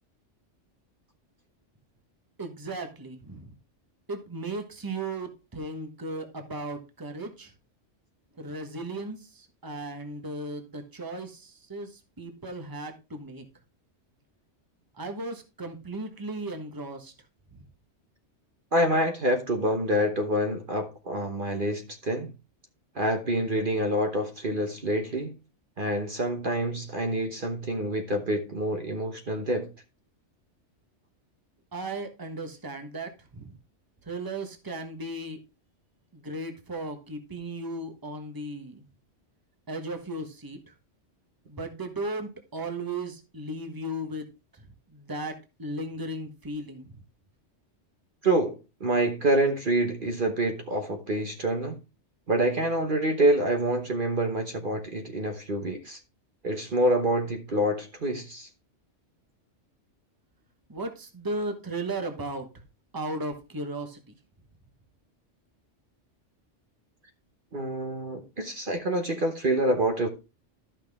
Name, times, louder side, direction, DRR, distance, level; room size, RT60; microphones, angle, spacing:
voice 1, 2.4-3.5 4.1-7.5 8.4-13.4 15.0-17.1 31.7-33.5 34.1-35.4 36.1-38.8 39.7-40.6 41.5-44.3 44.9-47.0 60.7-62.5 62.9-64.0, right 2 dB, 20° right, 1.3 m, -36 dB
voice 2, 18.7-22.3 22.9-25.3 25.8-29.7 48.2-51.8 52.3-56.0 56.4-58.5 67.5-70.1, right 1 dB, 45° right, 1.3 m, -27 dB
12.5 x 6.0 x 3.6 m
omnidirectional pair, 1.2 m